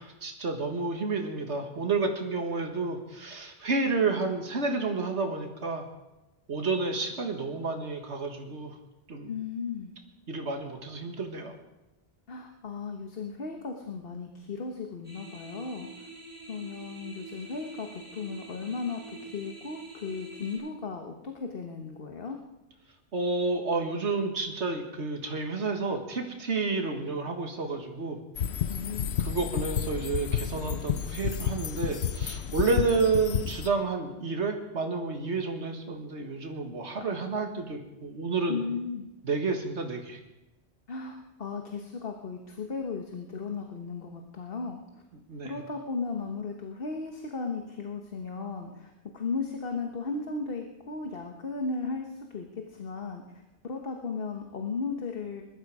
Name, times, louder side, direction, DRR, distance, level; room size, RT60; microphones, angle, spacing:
voice 1, 0.0-5.9 6.5-8.8 9.1-9.3 10.3-11.5 23.1-28.2 29.2-38.6 39.2-40.2 45.3-45.5, right 3 dB, 80° right, 4 dB, 2.0 m, -30 dB
voice 2, 9.3-9.9 12.3-16.1 16.5-22.4 28.7-29.2 38.5-39.1 40.9-44.8 45.4-53.2 53.6-55.4, left 4 dB, 55° left, 3 dB, 1.4 m, -36 dB
sound 1, 15.0-20.6, right 2 dB, 25° left, 6.1 m, -46 dB
sound 2, 28.4-33.7, left 8 dB, 75° left, 1.0 m, -31 dB
20.5 x 12.5 x 4.9 m, 1.0 s
omnidirectional pair, 1.1 m